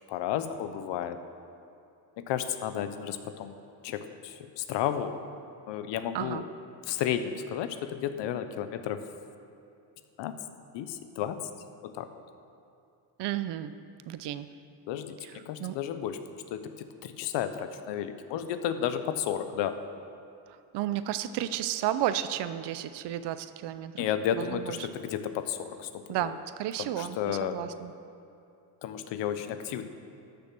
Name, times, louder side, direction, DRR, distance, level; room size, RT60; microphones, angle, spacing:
voice 1, 0.1-1.2 2.2-3.6 3.8-5.2 5.7-6.4 6.9-9.1 10.2-10.3 10.7-11.4 11.8-12.1 14.9-19.8 24.0-26.3 26.8-27.6 28.8-29.9, left 9 dB, 90° left, 10 dB, 0.9 m, -32 dB
voice 2, 13.2-13.7 14.1-14.5 15.2-15.8 20.5-24.1 24.3-24.9 26.1-27.9, right 12 dB, 70° right, 12 dB, 0.7 m, -33 dB
13.5 x 7.0 x 6.1 m, 2.7 s
cardioid pair, 130°, 42 cm